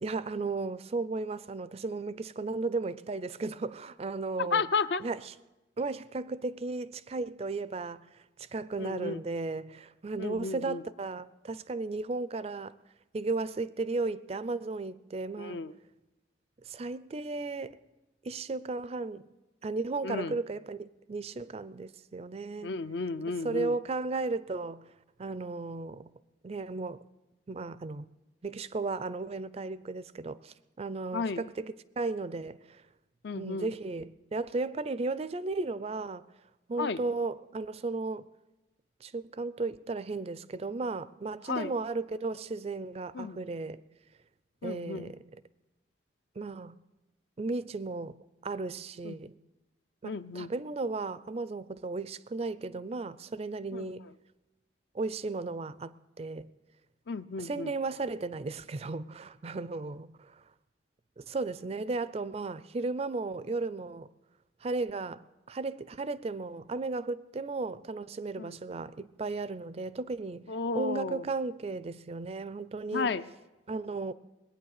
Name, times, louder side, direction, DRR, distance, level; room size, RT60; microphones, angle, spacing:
voice 1, 0.0-4.6 5.0-5.3 5.8-12.8 13.1-15.6 16.6-17.7 18.2-19.3 19.6-22.7 23.4-24.8 25.2-26.1 26.4-27.1 27.5-28.1 28.4-32.8 33.3-36.2 36.7-38.3 39.0-43.8 44.6-45.2 46.4-46.8 47.4-48.2 48.4-49.3 50.0-54.1 54.9-56.5 57.4-60.4 61.2-64.1 64.6-70.4 70.7-73.1 73.7-74.1, right 3 dB, 35° right, 0.4 m, -35 dB
voice 2, 4.4-5.0 8.8-9.2 10.2-10.8 15.4-15.7 20.0-20.4 22.6-23.8 31.1-31.5 33.2-33.7 36.8-37.0 41.5-41.7 43.1-43.4 44.6-45.1 49.0-49.2 50.0-50.5 53.7-53.9 57.1-57.7 68.4-68.6 70.5-71.2 72.9-73.3, left 4 dB, 60° left, 0.5 m, -33 dB
20.5 x 9.2 x 6.6 m
head